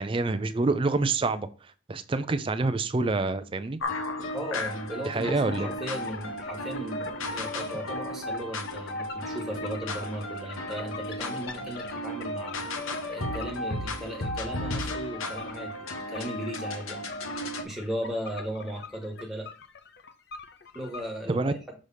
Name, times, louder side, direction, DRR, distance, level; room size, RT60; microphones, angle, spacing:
voice 1, 0.0-1.5 1.9-3.8 5.0-5.7 21.3-21.5, right 3 dB, 25° right, 12 dB, 0.4 m, -27 dB
sound 1, 3.8-17.6, left 1 dB, 90° left, 1.1 m, -34 dB
voice 2, 4.3-12.6 13.0-19.5 20.7-21.6, equal, ahead, -1 dB, 1.4 m, -37 dB
sound 2, 5.2-21.0, left 5 dB, 55° left, 0.7 m, -45 dB
6.2 x 3.4 x 5.5 m, 0.36 s
head